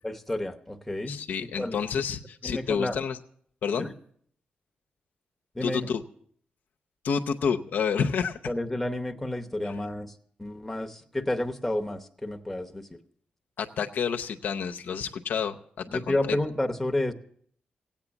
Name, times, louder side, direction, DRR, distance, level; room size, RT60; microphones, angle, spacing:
voice 1, 0.0-1.8 2.4-3.0 3.8-3.9 5.5-5.9 8.5-13.0 15.9-17.1, left 1 dB, 5° left, 4 dB, 0.9 m, -31 dB
voice 2, 1.1-3.2 3.6-3.9 5.6-6.0 7.0-8.4 9.6-9.7 13.6-16.4, left 6 dB, 85° left, 5 dB, 0.7 m, -29 dB
17.0 x 8.7 x 7.1 m, 0.62 s
wide cardioid pair, 135°, 3 cm